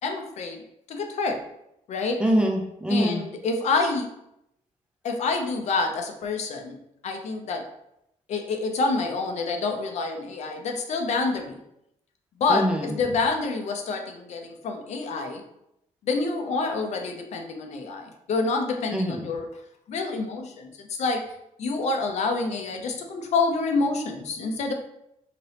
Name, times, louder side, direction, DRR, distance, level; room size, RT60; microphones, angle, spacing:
voice 1, 0.0-0.6 0.9-1.4 1.9-2.2 2.9-4.1 5.0-6.8 7.0-7.6 8.3-11.6 12.4-15.4 16.0-19.5 19.9-21.3 21.6-24.7, left 3 dB, 55° left, 4 dB, 0.5 m, -27 dB
voice 2, 2.2-3.2 12.5-13.0 18.9-19.3, equal, 5° right, 0 dB, 0.3 m, -24 dB
2.9 x 2.7 x 3.1 m, 0.80 s
wide cardioid pair, 165°, 14 cm